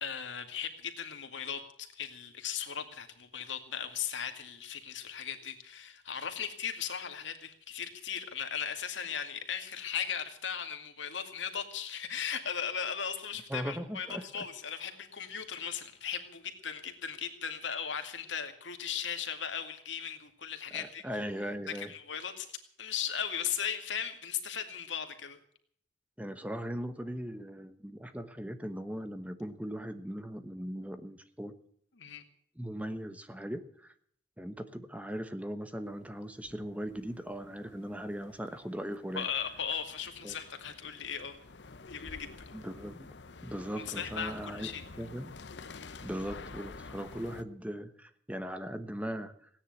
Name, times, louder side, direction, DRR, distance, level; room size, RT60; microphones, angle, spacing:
voice 1, 0.0-21.0 21.7-22.5 22.8-25.4 32.0-32.2 39.1-41.4 41.9-42.3 43.8-44.8, left 7 dB, 90° left, 6 dB, 2.3 m, -37 dB
voice 2, 13.5-14.4 20.7-21.9 26.2-31.5 32.6-33.9 34.4-39.3 40.2-40.3 42.5-43.1 43.4-44.7 45.0-45.3 46.0-49.3, equal, 10° right, 10 dB, 1.1 m, -39 dB
sound 1, 35.8-47.4, left 3 dB, 70° left, 0.9 m, -49 dB
17.0 x 10.0 x 8.0 m, 0.63 s
head